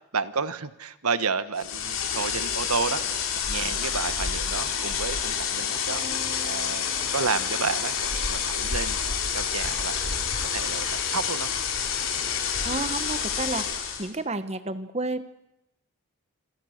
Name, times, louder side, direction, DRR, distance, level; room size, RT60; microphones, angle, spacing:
voice 1, 0.1-6.0 6.4-9.0 9.3-11.5, right 5 dB, 85° right, 13 dB, 1.4 m, -31 dB
sound 1, 1.6-14.1, left 7 dB, 60° left, 4.4 m, -28 dB
sound 2, 5.9-8.3, left 3 dB, 50° right, 5.8 m, -46 dB
voice 2, 12.6-13.7 14.0-15.2, right 2 dB, 30° right, 12 dB, 1.1 m, -30 dB
27.5 x 25.5 x 6.6 m, 0.84 s
head